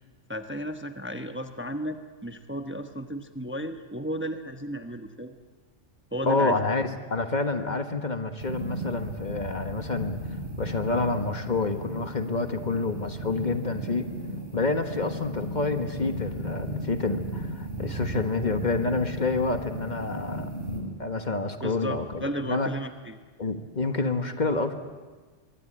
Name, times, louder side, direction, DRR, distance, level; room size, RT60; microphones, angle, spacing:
voice 1, 0.3-5.4 6.1-6.6 21.6-23.2, equal, 10° right, 7 dB, 1.0 m, -34 dB
voice 2, 6.3-10.2 10.6-14.1 14.5-20.5 21.0-22.7 23.4-24.7, left 3 dB, 40° left, 7 dB, 1.5 m, -28 dB
sound 1, 8.4-20.8, right 1 dB, 45° right, 5.2 m, -35 dB
24.5 x 22.0 x 8.9 m, 1.3 s
omnidirectional pair, 1.2 m